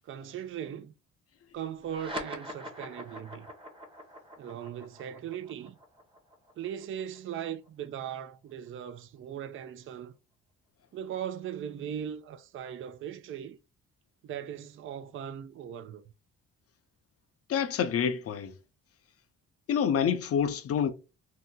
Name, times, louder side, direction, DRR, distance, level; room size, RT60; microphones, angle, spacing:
voice 1, 0.0-0.9 1.5-3.5 4.4-5.8 6.6-10.1 10.9-13.6 14.2-16.0, right 9 dB, 45° right, 0.4 m, -39 dB
sound 1, 1.8-8.7, equal, 15° right, 0.9 m, -44 dB
voice 2, 17.5-18.5 19.7-20.9, left 8 dB, 50° left, 0.6 m, -27 dB
2.8 x 2.0 x 3.6 m
cardioid pair, 90°, 30 cm